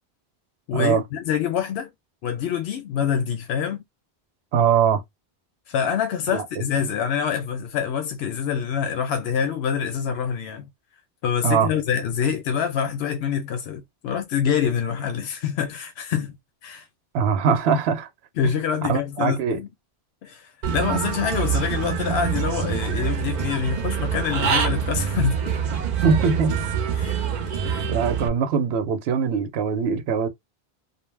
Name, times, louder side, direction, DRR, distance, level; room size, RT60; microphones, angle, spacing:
voice 1, 0.7-1.9 2.2-3.8 5.7-10.7 11.2-16.4 16.6-16.8 18.4-19.7 20.2-25.6 26.9-27.2 27.6-27.9, left 8 dB, 85° left, 0.8 m, -26 dB
voice 2, 4.5-5.0 6.3-6.5 11.4-11.7 17.1-18.1 18.4-18.5 18.8-19.6 26.0-26.6 27.9-30.3, right 6 dB, 85° right, 0.8 m, -21 dB
Human voice / Bird, 20.6-28.3, right 7 dB, 55° right, 0.5 m, -25 dB
2.5 x 2.1 x 3.2 m
omnidirectional pair, 1.0 m